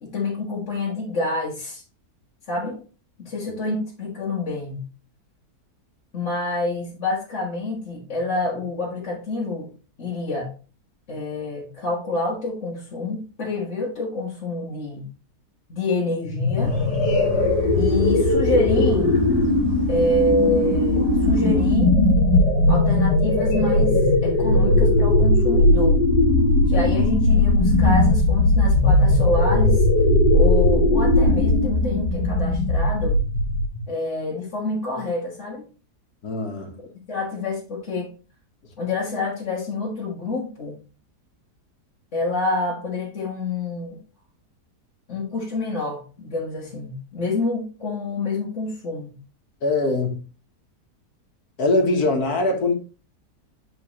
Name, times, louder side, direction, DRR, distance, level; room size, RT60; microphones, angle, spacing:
voice 1, 0.0-1.8 2.5-2.8 3.2-4.9 6.1-9.7 10.0-10.5 11.1-15.1 15.7-16.8 17.7-19.2 19.9-22.0 22.7-26.0 26.7-29.9 30.3-33.2 33.9-35.7 37.1-38.1 38.8-40.8 42.1-44.0 45.1-49.2, left 2 dB, 45° left, 1.8 m, -27 dB
sound 1, 16.3-33.8, left 1 dB, 85° left, 2.2 m, -18 dB
sound 2, 16.6-21.7, right 3 dB, 60° right, 1.9 m, -34 dB
voice 2, 36.2-36.7 49.6-50.2 51.6-52.7, left 2 dB, 65° left, 1.9 m, -22 dB
8.6 x 4.6 x 3.0 m
omnidirectional pair, 1.7 m